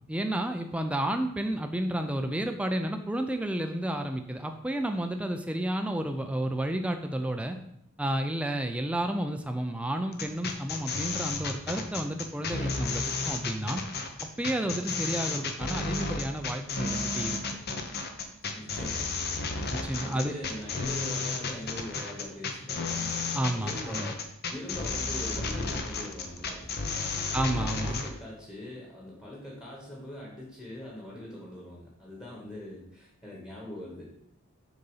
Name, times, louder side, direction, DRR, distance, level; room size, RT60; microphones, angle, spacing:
voice 1, 0.1-7.6 8.0-13.8 14.4-17.4 19.7-20.3 23.3-24.1 27.3-28.0, right 1 dB, 5° right, 5 dB, 0.4 m, -31 dB
sound 1, 10.1-28.1, left 3 dB, 50° left, 0.8 m, -32 dB
voice 2, 18.5-19.2 20.0-23.1 23.5-24.2 24.5-34.1, left 1 dB, 15° left, -4 dB, 1.4 m, -42 dB
6.6 x 4.0 x 5.5 m, 0.73 s
head